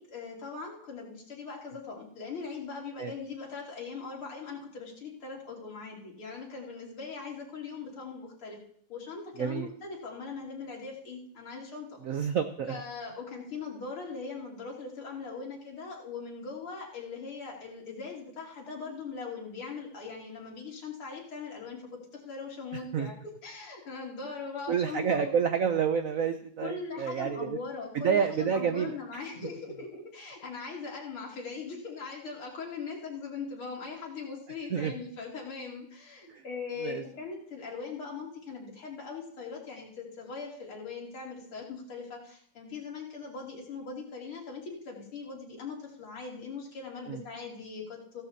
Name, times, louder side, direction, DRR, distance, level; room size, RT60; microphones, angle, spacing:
voice 1, 0.0-8.6 8.9-11.9 12.1-12.2 12.7-25.4 26.6-48.2, left 4 dB, 80° left, -2 dB, 3.6 m, -40 dB
voice 2, 9.4-9.7 12.0-12.8 22.9-23.1 24.7-27.6 27.9-29.2 34.7-34.9 36.3-36.4 36.8-37.0 47.1-47.2, right 7 dB, 80° right, 8 dB, 0.7 m, -29 dB
16.0 x 13.5 x 2.8 m, 0.62 s
omnidirectional pair, 2.3 m